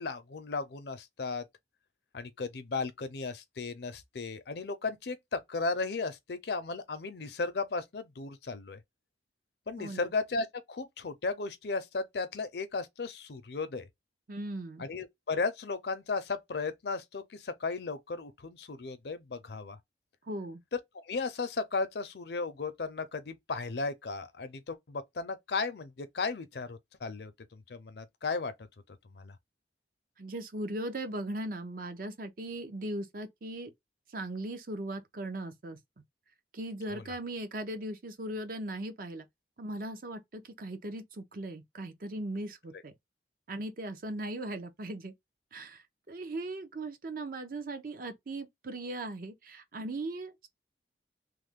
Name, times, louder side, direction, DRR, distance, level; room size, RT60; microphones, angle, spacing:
voice 1, 0.0-1.4 2.1-8.8 9.7-13.9 14.8-19.8 20.7-28.5 29.0-29.3 36.9-37.2, left 4 dB, 65° left, 0.5 m, -35 dB
voice 2, 14.3-14.8 20.3-20.6 30.2-33.7 34.1-35.8 36.5-39.3 39.6-42.9 43.5-45.1 45.5-45.8 46.1-50.5, right 1 dB, 50° right, 0.6 m, -38 dB
3.1 x 2.1 x 3.5 m
head